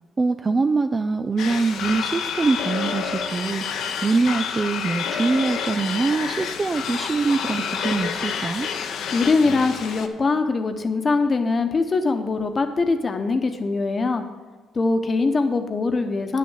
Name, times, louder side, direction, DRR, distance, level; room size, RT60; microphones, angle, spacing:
voice 1, 0.2-3.6 4.0-8.7, right 3 dB, 30° right, 9 dB, 0.4 m, -23 dB
sound 1, 1.4-10.1, left 6 dB, 75° left, 0.9 m, -29 dB
voice 2, 9.1-14.2 14.7-16.4, left 3 dB, 35° left, 7 dB, 1.1 m, -22 dB
9.3 x 6.7 x 6.4 m, 1.3 s
cardioid pair, 90°, 0 cm